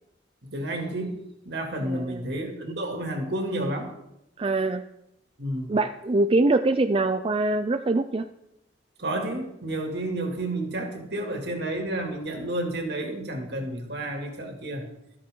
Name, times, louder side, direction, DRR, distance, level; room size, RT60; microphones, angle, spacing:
voice 1, 0.5-1.1 1.5-3.9 5.4-5.7 9.0-14.9, right 1 dB, 65° right, 2 dB, 2.5 m, -30 dB
voice 2, 1.8-2.2 4.4-4.8 5.7-8.3, right 2 dB, 30° right, 8 dB, 0.4 m, -24 dB
13.0 x 13.0 x 3.8 m, 0.86 s
head